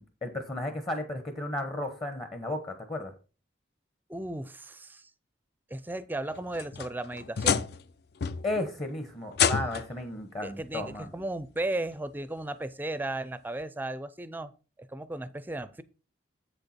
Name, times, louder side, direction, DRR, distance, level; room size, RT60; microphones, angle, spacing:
voice 1, 0.0-3.1 8.4-11.1, left 1 dB, 30° left, 0.9 m, -34 dB
voice 2, 4.1-5.1 5.7-7.7 10.4-14.5 14.9-15.8, right 2 dB, 10° right, 0.5 m, -35 dB
sound 1, 6.3-7.9 8.2-8.7 9.3-10.0 11.2-11.3 11.9-12.0 13.6-13.7, left 7 dB, 55° left, 0.4 m, -29 dB
7.8 x 6.7 x 4.3 m
head